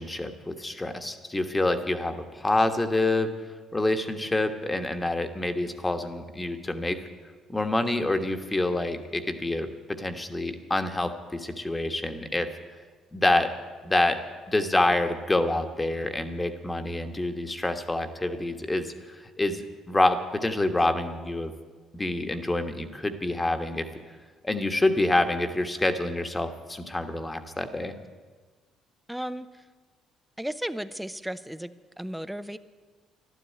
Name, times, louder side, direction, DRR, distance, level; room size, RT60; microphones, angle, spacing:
voice 1, 0.0-3.3 3.7-7.0 7.5-12.5 13.1-13.5 13.8-14.2 14.5-21.5 21.9-23.9 24.4-27.9, left 2 dB, 15° left, 7 dB, 1.3 m, -27 dB
voice 2, 29.1-29.6 30.4-32.6, equal, 5° right, 13 dB, 0.7 m, -35 dB
12.0 x 12.0 x 8.5 m, 1.4 s
supercardioid pair, 75°, 0 cm